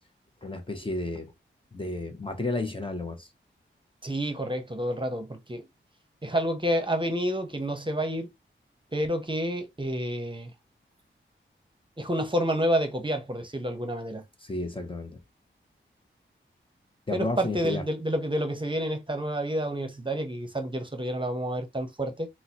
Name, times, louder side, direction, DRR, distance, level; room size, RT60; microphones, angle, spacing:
voice 1, 0.4-1.3 1.7-3.3 14.4-15.2 17.1-17.8, left 2 dB, 25° left, 0.7 m, -32 dB
voice 2, 4.0-5.7 6.2-8.3 8.9-10.5 12.0-14.2 17.1-22.3, equal, 25° right, 0.8 m, -29 dB
3.8 x 2.0 x 2.8 m
cardioid pair, 50°, 21 cm